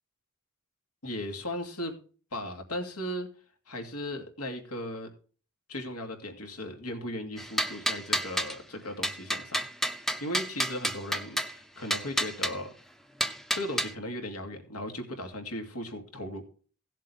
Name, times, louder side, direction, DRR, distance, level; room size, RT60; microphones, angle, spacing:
voice 1, 1.0-1.9 2.3-3.3 3.7-5.1 5.7-9.7 9.9-12.7 13.5-16.4, left 1 dB, 85° left, 5 dB, 2.6 m, -37 dB
sound 1, 7.4-8.6 9.0-11.5 11.9-12.5 13.2-13.9, equal, ahead, 0.5 m, -30 dB
17.0 x 7.6 x 3.4 m, 0.40 s
head